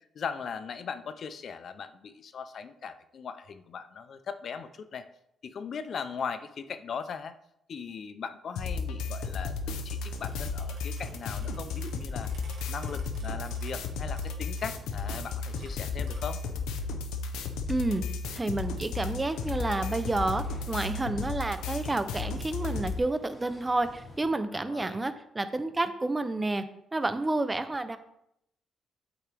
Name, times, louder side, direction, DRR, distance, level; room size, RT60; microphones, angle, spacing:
voice 1, 0.1-5.1 5.4-7.3 7.7-12.3 12.7-16.4 24.5-25.0, left 6 dB, 55° left, 11 dB, 0.5 m, -39 dB
sound 1, 8.5-23.0, left 4 dB, 90° left, 0.7 m, -34 dB
sound 2, 9.8-16.3 16.8-16.9 17.1-18.0 18.4-18.5 18.8-18.9 19.3-19.5 19.9-20.9, right 4 dB, 70° right, 2.0 m, -55 dB
voice 2, 17.7-18.0 18.3-26.6 26.9-28.0, right 2 dB, 20° right, 11 dB, 0.6 m, -30 dB
sound 3, 19.2-24.3, left 1 dB, 25° left, 2.9 m, -51 dB
8.4 x 5.9 x 3.5 m, 0.78 s
cardioid pair, 90°, 0 cm